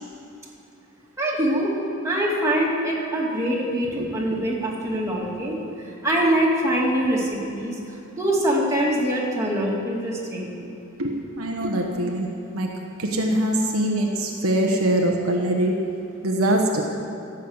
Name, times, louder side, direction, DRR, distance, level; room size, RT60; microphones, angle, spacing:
voice 1, 1.2-1.7 2.0-5.6 5.8-7.8 8.1-10.5, right 1 dB, 15° right, -5 dB, 2.6 m, -23 dB
voice 2, 11.0-12.3 12.5-12.7 13.0-15.7 16.2-16.8, right 1 dB, 70° right, 1 dB, 1.2 m, -23 dB
16.0 x 6.6 x 7.9 m, 2.7 s
head